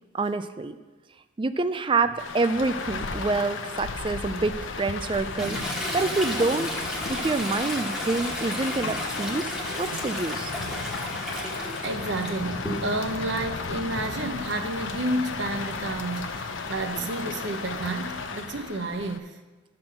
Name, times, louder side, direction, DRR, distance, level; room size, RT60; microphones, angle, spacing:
voice 1, 0.1-0.8 1.4-5.6 5.9-6.7 7.1-9.5 9.8-10.5 16.9-17.0, right 3 dB, 25° right, 11 dB, 0.4 m, -27 dB
Rain, 2.2-19.2, left 4 dB, 80° left, 0.7 m, -34 dB
sound 1, 5.1-11.4, left 4 dB, 45° left, 0.4 m, -43 dB
Toilet flush, 5.4-13.2 13.6-17.9, equal, 5° right, 1.3 m, -35 dB
voice 2, 11.8-19.2, right 2 dB, 65° right, 5 dB, 0.9 m, -30 dB
12.5 x 4.4 x 6.5 m, 1.2 s
head